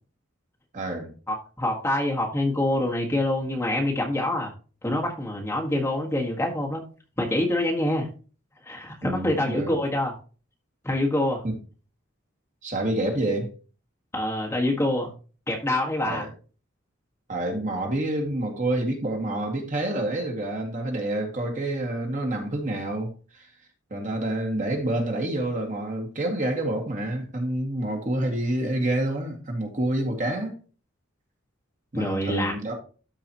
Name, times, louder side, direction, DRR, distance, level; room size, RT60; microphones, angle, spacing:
voice 1, 0.7-1.1 9.0-9.7 11.4-11.6 12.6-13.5 16.1-16.3 17.3-23.5 23.9-30.5 31.9-32.7, right 1 dB, 40° right, 1.9 m, -28 dB
voice 2, 1.3-4.5 4.8-6.8 7.2-8.1 8.6-10.1 10.8-11.4 14.1-15.1 15.5-16.3 31.9-32.5, left 1 dB, 10° left, 1.6 m, -25 dB
13.0 x 4.8 x 3.0 m
head